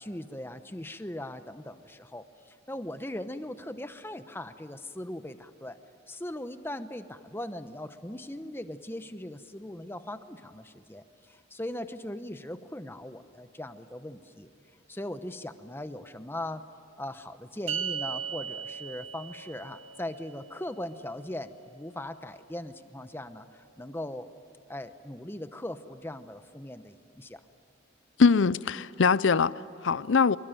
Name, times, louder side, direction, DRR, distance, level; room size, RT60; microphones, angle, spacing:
voice 1, 0.0-5.8 6.1-14.5 14.9-16.7 17.0-24.3 24.7-27.4, left 1 dB, 10° left, 0.9 m, -39 dB
sound 1, 17.7-24.2, right 7 dB, 80° right, 1.7 m, -40 dB
voice 2, 28.2-30.4, left 5 dB, 75° left, 0.6 m, -23 dB
25.0 x 24.0 x 9.1 m
head